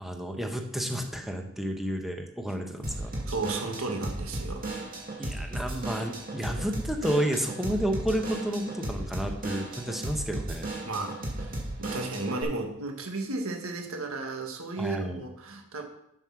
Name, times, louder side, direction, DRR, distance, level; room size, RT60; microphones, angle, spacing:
voice 1, 0.0-3.1 5.2-10.7 14.8-15.2, equal, ahead, 3 dB, 1.0 m, -31 dB
Drum kit / Drum, 2.8-12.4, right 1 dB, 45° right, 2.3 m, -35 dB
voice 2, 3.3-4.7 10.9-15.8, right 3 dB, 90° right, 3 dB, 1.5 m, -34 dB
7.4 x 6.5 x 5.9 m, 0.82 s
head